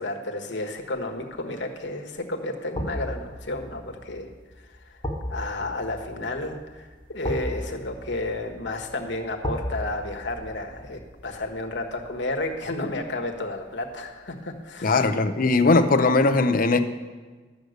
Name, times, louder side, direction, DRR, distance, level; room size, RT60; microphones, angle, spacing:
voice 1, 0.0-4.3 5.3-15.1 15.4-15.9, left 2 dB, 65° left, 3 dB, 1.4 m, -32 dB
sound 1, 1.0-1.3 2.7-13.7 14.1-14.2, equal, 25° left, 1.4 m, -37 dB
voice 2, 14.8-16.8, left 3 dB, 50° left, 8 dB, 0.7 m, -19 dB
12.0 x 6.5 x 8.0 m, 1.4 s
head